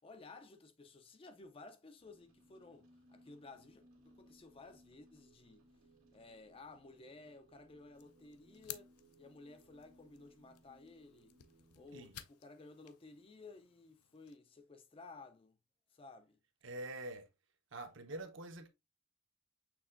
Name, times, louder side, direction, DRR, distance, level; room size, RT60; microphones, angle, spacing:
voice 1, 0.0-5.7 6.1-8.9 9.2-11.3 11.7-15.6 15.9-16.4, left 3 dB, 25° left, 0.4 m, -56 dB
sound 1, 2.0-12.2, right 1 dB, 80° right, 1.5 m, -66 dB
sound 2, 7.9-14.4, left 13 dB, 90° left, 0.5 m, -56 dB
voice 2, 16.6-17.3 17.7-18.7, right 1 dB, 55° right, 0.8 m, -45 dB
6.2 x 3.2 x 2.5 m
head